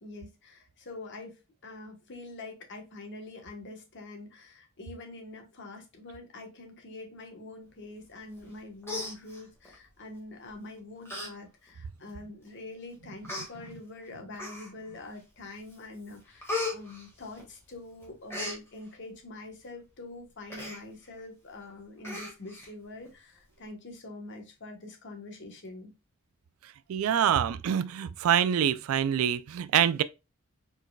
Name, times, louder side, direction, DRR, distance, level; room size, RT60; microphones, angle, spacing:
voice 1, 0.0-25.9, left 2 dB, 55° left, 1.1 m, -45 dB
Human voice, 8.4-8.6 8.8-9.7 10.5-10.7 11.1-11.3 11.7-11.8 12.6-12.7 13.2-13.5 14.4-14.9 15.4-15.8 16.0-17.7 18.0-18.6 20.5-20.8 21.2-21.3 21.5-21.7 22.0-22.7 23.1-23.2, left 2 dB, 10° left, 1.6 m, -36 dB
voice 2, 26.9-30.0, right 9 dB, 70° right, 0.3 m, -25 dB
4.6 x 4.5 x 2.2 m
head